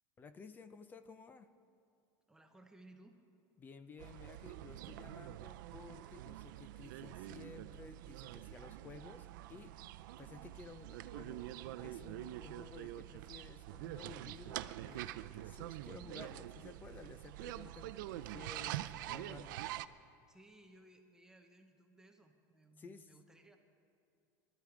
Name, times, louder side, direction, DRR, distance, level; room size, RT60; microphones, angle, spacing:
voice 1, 0.2-1.5 3.6-9.8 10.2-19.7 22.8-23.1, left 5 dB, 20° left, 11 dB, 0.6 m, -54 dB
voice 2, 2.3-3.3 20.3-23.6, right 1 dB, 5° right, 3 dB, 0.9 m, -61 dB
sound 1, 4.0-19.9, right 14 dB, 80° right, 0.5 m, -46 dB
20.5 x 13.0 x 5.0 m, 2.4 s
supercardioid pair, 160°, 10 cm